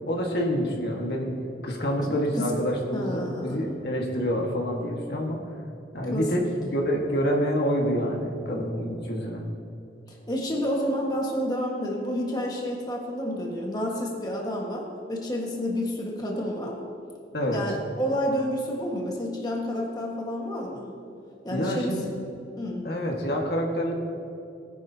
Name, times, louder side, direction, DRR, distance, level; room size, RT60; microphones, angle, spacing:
voice 1, 0.1-1.3 1.6-5.4 5.9-9.4 17.3-17.6 21.5-22.0 22.8-23.9, equal, 65° left, 0 dB, 1.6 m, -27 dB
voice 2, 2.9-3.7 6.1-6.5 10.1-16.8 17.5-20.9 21.4-22.0 22.6-22.8, equal, 25° left, -2 dB, 1.5 m, -29 dB
19.5 x 10.5 x 2.8 m, 2.7 s
head